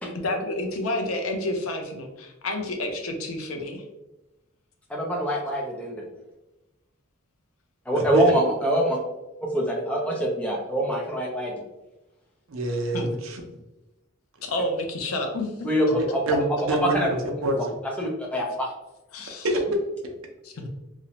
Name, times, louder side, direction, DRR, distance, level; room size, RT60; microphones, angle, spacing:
voice 1, 0.2-3.8 12.9-13.1 14.4-15.5 15.9-16.0 19.1-19.5 20.4-20.7, left 1 dB, 85° left, 4 dB, 0.5 m, -29 dB
voice 2, 4.9-6.0 7.9-9.0 9.5-11.6 15.6-15.9 16.8-17.1 18.0-18.7, right 1 dB, 5° left, -2 dB, 0.5 m, -24 dB
voice 3, 7.9-8.3 12.5-13.4 15.9-17.8 19.4-19.8, right 1 dB, 75° right, 2 dB, 0.5 m, -26 dB
2.5 x 2.1 x 2.8 m, 1.0 s
head